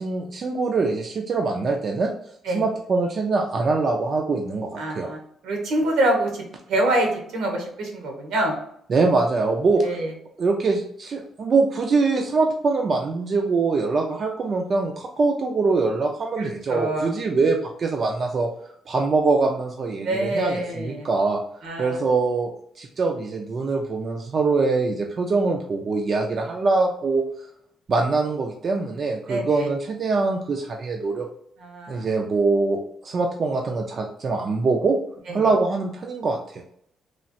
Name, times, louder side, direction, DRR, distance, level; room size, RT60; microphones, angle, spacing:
voice 1, 0.0-2.1 2.5-5.1 8.9-9.8 10.4-18.5 18.9-21.4 21.8-27.2 27.9-31.3 31.9-35.0 35.3-36.6, right 3 dB, 50° right, 1 dB, 0.4 m, -23 dB
voice 2, 4.8-5.2 5.4-6.3 6.7-8.6 9.8-10.1 16.4-17.1 20.0-21.1 21.6-22.0 29.3-29.7 31.6-32.1 35.3-35.5, right 1 dB, 85° right, 1 dB, 1.0 m, -25 dB
3.1 x 2.4 x 2.6 m, 0.68 s
cardioid pair, 90°, 0 cm